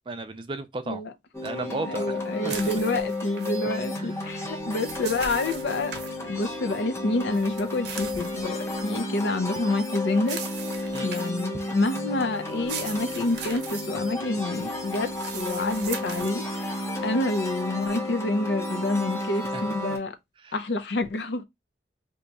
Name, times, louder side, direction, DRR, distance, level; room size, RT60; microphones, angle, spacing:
voice 1, 0.1-1.0 1.4-2.1 2.4-2.7 4.0-4.5 10.9-11.5 19.5-20.0 20.4-20.6, right 3 dB, 30° right, 0.4 m, -36 dB
sound 1, 1.3-20.0, left 1 dB, 15° left, 0.7 m, -32 dB
voice 2, 1.9-8.6 8.8-10.4 11.0-20.1 20.5-21.4, left 2 dB, 80° left, 0.5 m, -28 dB
sound 2, 2.4-3.6 4.5-6.1 7.3-8.9 10.2-11.4 12.5-13.9 14.9-16.4, right 6 dB, 70° right, 0.7 m, -39 dB
2.8 x 2.3 x 4.0 m
head